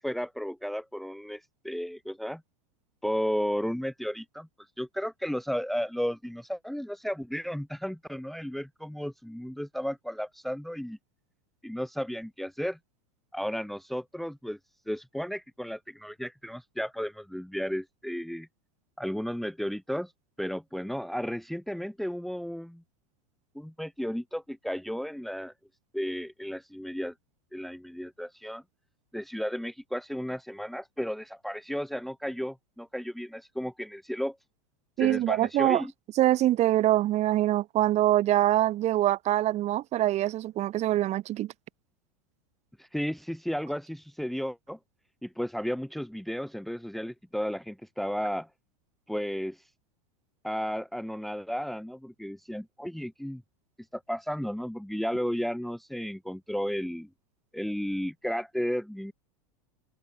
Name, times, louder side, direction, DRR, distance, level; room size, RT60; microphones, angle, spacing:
voice 1, 0.0-2.4 3.0-4.5 4.8-11.0 11.6-12.8 13.3-14.6 14.9-18.5 19.0-20.1 20.4-22.8 23.5-25.5 25.9-27.1 27.5-28.6 29.1-34.4 35.0-35.9 42.8-44.8 45.2-48.5 49.1-49.6 50.4-53.4 53.9-57.1 57.5-59.1, equal, ahead, 1.5 m, -33 dB
voice 2, 35.0-35.8 36.2-41.5, right 14 dB, 40° right, 3.1 m, -24 dB
hypercardioid pair, 120°, 18 cm